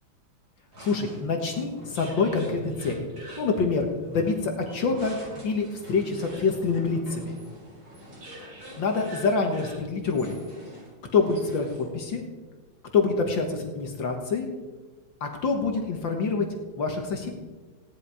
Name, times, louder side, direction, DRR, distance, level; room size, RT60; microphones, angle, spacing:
sound 1, 0.7-12.0, right 1 dB, 85° right, 6.9 m, -44 dB
voice 1, 0.8-3.1 3.4-5.2 5.4-7.4 8.8-10.4 11.1-12.2 12.9-14.5 15.2-16.5 16.8-17.3, left 4 dB, 65° left, 3 dB, 2.1 m, -26 dB
17.0 x 11.0 x 4.9 m, 1.3 s
omnidirectional pair, 2.3 m